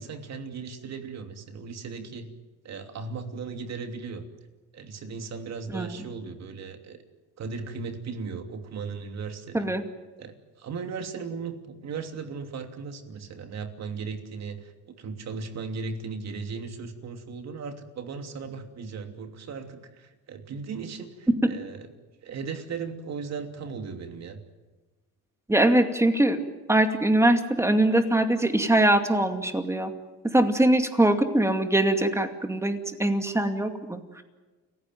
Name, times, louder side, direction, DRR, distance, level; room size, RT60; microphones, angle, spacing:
voice 1, 0.0-2.3 2.6-4.2 4.7-7.0 7.4-9.7 10.2-14.7 15.0-21.9 22.2-24.4, right 5 dB, 50° right, 6 dB, 3.0 m, -37 dB
voice 2, 5.7-6.0 9.5-9.8 21.4-21.5 25.5-26.4 26.7-29.9 30.2-34.2, right 1 dB, 10° right, 7 dB, 2.4 m, -22 dB
29.5 x 16.0 x 9.2 m, 1.2 s
cardioid pair, 125°, 33 cm